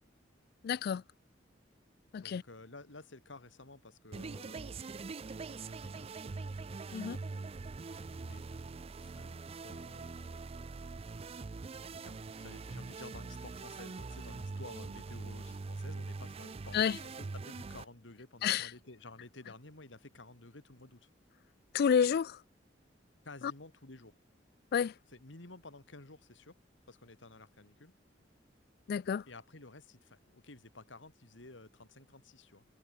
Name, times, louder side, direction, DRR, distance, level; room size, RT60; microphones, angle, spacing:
voice 1, 0.6-1.0 2.1-2.4 6.9-7.2 16.7-17.0 18.4-18.7 21.7-22.4 23.4-23.5 24.7-25.0 28.9-29.3, left 7 dB, 55° left, 0.3 m, -30 dB
voice 2, 2.2-6.5 8.2-8.5 9.0-10.5 11.8-21.1 23.2-24.1 25.1-26.6 26.9-27.9 29.3-32.6, left 2 dB, 85° left, 2.4 m, -53 dB
sound 1, 4.1-17.8, right 3 dB, 35° right, 0.4 m, -43 dB
head